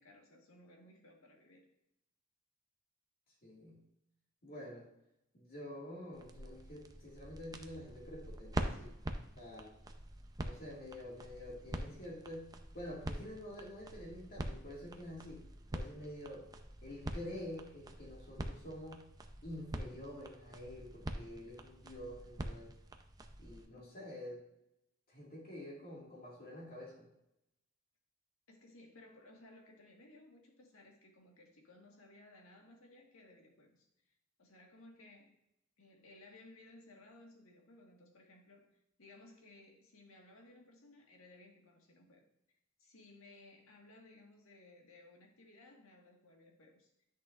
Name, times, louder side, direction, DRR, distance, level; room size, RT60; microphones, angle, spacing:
voice 1, 0.0-1.6 28.5-33.9 34.4-35.3 35.8-42.3 42.8-47.0, left 2 dB, 80° left, 1 dB, 1.6 m, -59 dB
voice 2, 3.4-3.8 4.4-4.9 5.3-8.9 9.4-9.7 10.4-12.5 12.7-15.5 15.7-16.5 16.8-19.0 19.4-22.7 23.4-24.4 25.1-27.1, left 1 dB, 45° left, -3 dB, 2.0 m, -48 dB
sound 1, 6.1-23.7, right 1 dB, 20° right, 0.5 m, -45 dB
10.0 x 6.3 x 2.5 m, 0.82 s
head